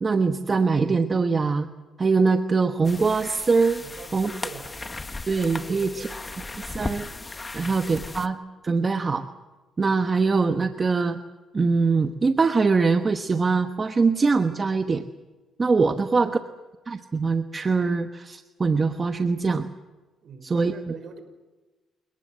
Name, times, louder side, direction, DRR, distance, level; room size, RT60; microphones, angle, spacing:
voice 1, 0.0-1.7 2.0-3.8 4.1-4.3 5.3-6.1 6.6-7.1 7.5-8.4 8.6-9.2 9.8-11.2 11.5-15.0 15.6-16.4 16.9-19.7 20.4-20.7, right 4 dB, 35° right, 7 dB, 1.1 m, -22 dB
sound 1, 2.8-8.3, left 3 dB, 25° left, 1.5 m, -36 dB
voice 2, 3.8-4.8 5.7-6.2 7.6-7.9 16.0-16.3 20.2-21.2, right 5 dB, 60° right, 9 dB, 5.4 m, -42 dB
29.5 x 19.0 x 7.7 m, 1.2 s
cardioid pair, 90°, 0 cm